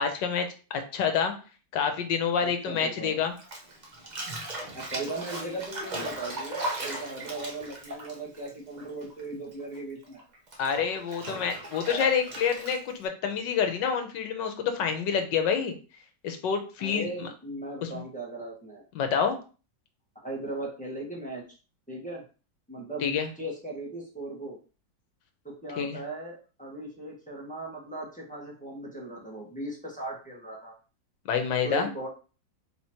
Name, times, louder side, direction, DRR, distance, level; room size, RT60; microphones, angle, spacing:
voice 1, 0.0-1.3 1.7-3.3 10.6-15.7 16.2-17.3 17.8-17.9 18.9-19.4 23.0-23.3 25.8-26.0 31.3-31.9, left 6 dB, 75° left, 7 dB, 1.5 m, -27 dB
voice 2, 2.4-3.2 4.7-10.2 16.8-18.8 20.2-21.4 21.9-22.2 22.7-23.1 23.4-24.6 25.4-30.7 31.6-32.1, right 2 dB, 5° left, -3 dB, 1.1 m, -38 dB
Bathtub (filling or washing), 3.4-9.2 9.5-13.0, right 1 dB, 40° right, 0.7 m, -37 dB
4.0 x 3.0 x 4.3 m, 0.35 s
omnidirectional pair, 2.0 m